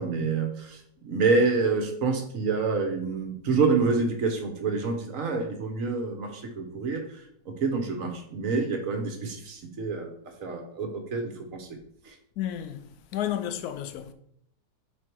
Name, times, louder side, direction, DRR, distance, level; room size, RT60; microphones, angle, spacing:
voice 1, 0.0-7.0 7.5-10.1 10.4-11.7 12.0-12.1, right 4 dB, 55° right, 1.3 m, -27 dB
voice 2, 12.4-14.1, left 11 dB, 75° left, 1.1 m, -32 dB
5.1 x 4.5 x 4.5 m
omnidirectional pair, 1.8 m